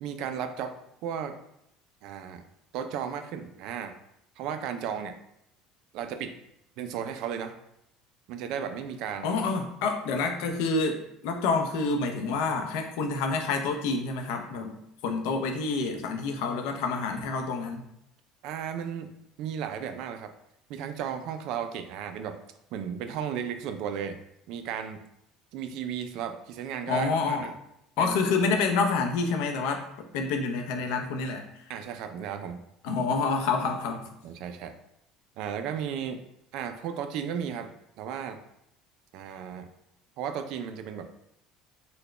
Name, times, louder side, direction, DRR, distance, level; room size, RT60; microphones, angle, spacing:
voice 1, 0.0-1.4 2.0-2.4 2.7-4.0 4.4-5.1 5.9-6.4 6.8-7.5 8.3-9.4 18.4-19.1 19.4-20.3 20.7-22.4 22.7-24.2 24.5-25.0 25.5-27.5 28.0-28.1 31.7-32.6 34.2-34.8 35.4-36.2 36.5-37.7 38.0-38.4 39.1-39.7 40.2-41.1, right 8 dB, 65° right, 8 dB, 0.4 m, -34 dB
voice 2, 9.2-17.8 26.9-27.5 28.0-31.4 32.8-34.1, left 4 dB, 80° left, 4 dB, 0.6 m, -28 dB
3.9 x 2.2 x 3.2 m, 0.80 s
cardioid pair, 125°, 0 cm